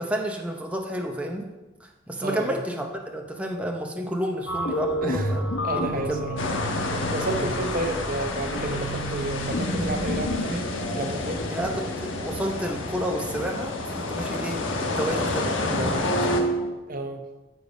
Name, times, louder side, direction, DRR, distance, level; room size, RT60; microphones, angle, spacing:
voice 1, 0.0-1.5 1.8-2.9 3.1-6.3 11.5-16.1, equal, 5° right, 1 dB, 0.7 m, -31 dB
sound 1, 4.5-15.3 15.6-16.7, right 1 dB, 65° left, 1.1 m, -31 dB
voice 2, 5.6-6.4 7.1-10.6 10.9-11.4 16.9-17.2, right 2 dB, 45° right, 6 dB, 1.0 m, -31 dB
sound 2, 6.4-16.4, left 2 dB, 85° left, 1.2 m, -30 dB
14.0 x 4.8 x 5.3 m, 1.1 s
head